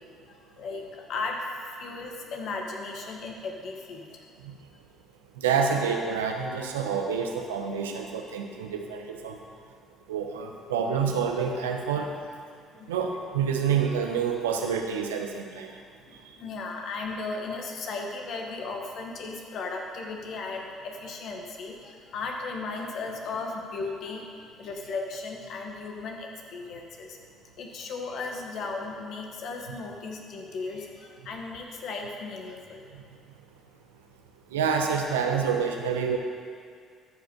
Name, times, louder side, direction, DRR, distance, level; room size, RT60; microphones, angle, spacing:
voice 1, 0.0-1.4 1.8-4.2 12.7-12.9 16.1-27.2 27.6-32.8, left 3 dB, 60° left, 1 dB, 1.3 m, -36 dB
voice 2, 5.4-9.4 10.1-12.1 12.9-15.7 34.5-36.2, right 6 dB, 85° right, 3 dB, 0.8 m, -28 dB
13.5 x 5.1 x 5.2 m, 2.1 s
hypercardioid pair, 55°, 0 cm